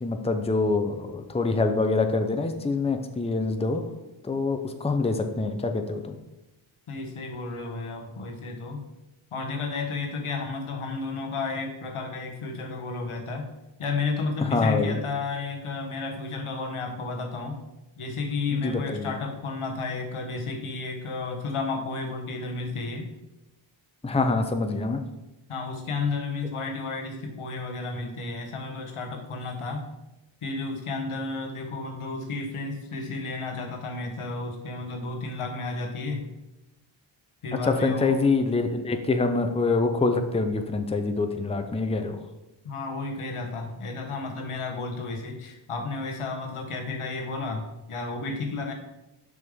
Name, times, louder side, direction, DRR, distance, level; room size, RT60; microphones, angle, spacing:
voice 1, 0.0-3.8 4.2-6.2 14.4-15.0 18.5-19.1 24.0-25.0 37.6-42.2, left 3 dB, 15° left, 6 dB, 0.6 m, -25 dB
voice 2, 6.9-8.9 9.3-13.5 13.8-17.6 18.0-23.1 25.5-29.9 30.4-36.3 37.4-38.2 42.6-48.7, left 3 dB, 85° left, 3 dB, 1.1 m, -32 dB
6.6 x 5.2 x 3.6 m, 0.96 s
cardioid pair, 60°, 49 cm